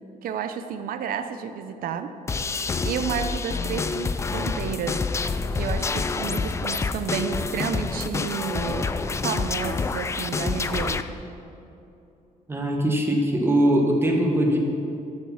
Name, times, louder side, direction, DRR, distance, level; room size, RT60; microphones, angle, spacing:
voice 1, 0.2-2.1 2.5-5.1 5.5-8.9 9.2-11.1, right 7 dB, 80° right, 9 dB, 0.7 m, -31 dB
sound 1, 2.3-11.0, left 4 dB, 20° left, 0.3 m, -27 dB
voice 2, 12.5-14.6, right 1 dB, 15° right, 0 dB, 1.2 m, -21 dB
12.0 x 6.7 x 5.8 m, 2.8 s
cardioid pair, 165°, 15 cm